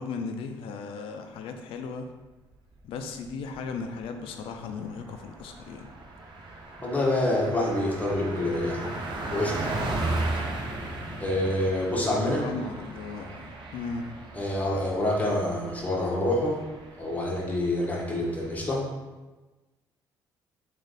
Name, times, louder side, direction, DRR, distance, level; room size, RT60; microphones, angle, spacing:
voice 1, 0.0-2.1 2.8-5.9 12.3-14.1, left 4 dB, 70° left, 6 dB, 0.4 m, -36 dB
Car passing by, 3.2-3.7 4.0-4.1 4.4-18.7, right 2 dB, 55° right, 0.7 m, -36 dB
voice 2, 6.8-8.9 9.3-9.7 11.2-12.5 14.4-16.6 17.0-18.8, left 1 dB, 15° left, -4 dB, 1.2 m, -27 dB
3.2 x 2.5 x 4.0 m, 1.2 s
supercardioid pair, 60°, 10 cm